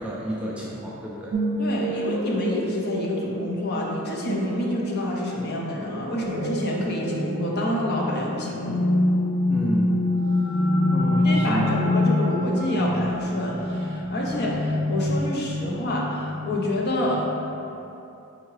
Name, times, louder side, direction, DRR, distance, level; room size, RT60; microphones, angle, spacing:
voice 1, 0.0-1.3 9.5-9.9 10.9-11.8, right 1 dB, 5° right, -5 dB, 0.3 m, -30 dB
sound 1, 1.3-17.5, left 1 dB, 85° right, 0.4 m, -26 dB
voice 2, 1.6-8.8 11.2-17.3, left 1 dB, 45° left, -2 dB, 0.6 m, -28 dB
4.6 x 3.5 x 3.2 m, 2.8 s
head